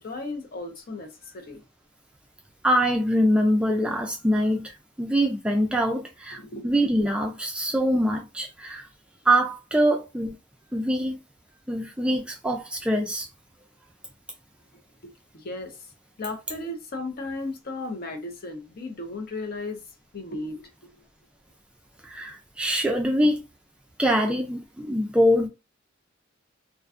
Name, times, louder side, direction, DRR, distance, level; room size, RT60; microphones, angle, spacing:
voice 1, 0.0-1.6 6.3-6.7 15.0-15.9 16.2-19.8 20.1-20.6, left 2 dB, 45° left, 0.5 m, -35 dB
voice 2, 2.6-8.9 9.3-10.4 10.7-11.2 11.7-13.3 22.0-23.4 24.0-25.5, equal, 5° right, 0.3 m, -24 dB
2.4 x 2.2 x 2.4 m
head